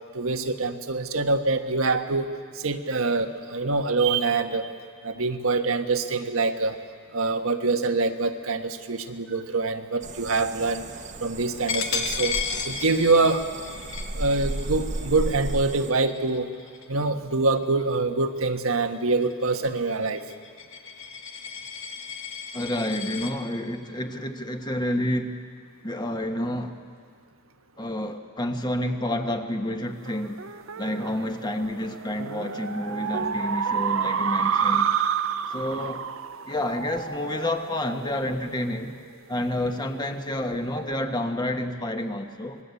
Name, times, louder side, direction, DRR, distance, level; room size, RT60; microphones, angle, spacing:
voice 1, 0.1-2.3 2.5-4.7 5.0-6.8 7.1-10.8 11.2-12.4 12.6-13.5 14.1-16.5 16.9-20.2, right 3 dB, 85° right, 6 dB, 1.5 m, -25 dB
sound 1, 10.0-15.9, right 1 dB, 35° right, 1.1 m, -34 dB
Coin (dropping), 11.7-17.1 17.5-17.8 18.2-23.3, left 5 dB, 65° left, 2.0 m, -34 dB
voice 2, 22.5-25.4 25.8-26.8 27.8-30.4 30.8-34.9 35.5-36.0 36.4-39.0 39.3-42.6, left 1 dB, 20° left, 5 dB, 1.5 m, -29 dB
sound 2, 30.0-38.9, right 7 dB, 70° right, 0.7 m, -29 dB
26.5 x 21.0 x 8.4 m, 2.1 s
head